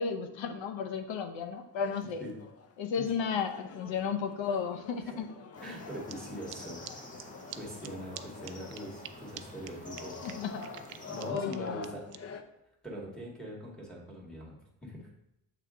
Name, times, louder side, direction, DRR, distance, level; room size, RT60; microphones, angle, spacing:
voice 1, 0.0-2.2 2.8-5.3 10.2-10.6 10.9-11.0 11.3-11.8, left 6 dB, 80° left, 7 dB, 0.9 m, -33 dB
sound 1, 1.5-12.4, left 5 dB, 35° left, 0.5 m, -47 dB
sound 2, 5.5-11.3, left 1 dB, 15° left, 0.9 m, -48 dB
voice 2, 5.6-7.1 7.5-10.4 11.1-12.1 12.8-15.1, equal, ahead, -4 dB, 1.9 m, -43 dB
sound 3, 6.1-6.2 6.5-6.6 6.9-7.0 7.2-7.3 7.5-7.6 7.8-7.9 8.2-8.3 8.4-9.1 9.4-9.5 9.7-9.8 10.0-12.2, right 14 dB, 80° right, 0.6 m, -44 dB
7.8 x 3.4 x 3.7 m, 0.84 s
cardioid pair, 105°, 45 cm